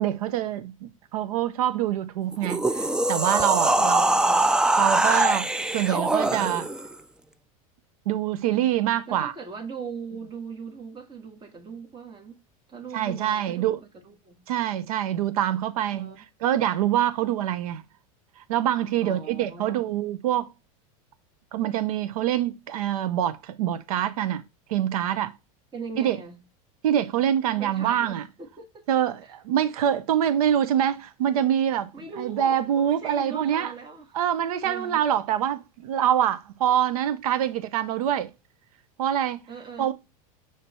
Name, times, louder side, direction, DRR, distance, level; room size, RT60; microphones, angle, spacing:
voice 1, 0.0-4.1 4.8-5.5 5.7-6.7 8.1-9.3 12.9-13.8 14.5-16.1 16.4-17.8 18.4-20.5 21.5-24.4 24.7-25.3 26.0-26.2 26.8-28.2 28.9-31.9 32.2-33.7 34.1-38.3 39.0-39.4 39.8-39.9, right 10 dB, 80° right, 0.7 m, -25 dB
sound 1, 2.3-6.9, right 2 dB, 5° right, 0.3 m, -23 dB
voice 2, 3.8-4.6 9.1-12.4 12.7-14.4 15.8-16.2 19.0-19.9 25.7-26.4 27.5-28.8 29.2-29.3 31.9-34.2 34.6-35.0 39.5-39.9, right 5 dB, 25° right, 1.8 m, -40 dB
6.7 x 3.3 x 4.3 m
supercardioid pair, 110°, 18 cm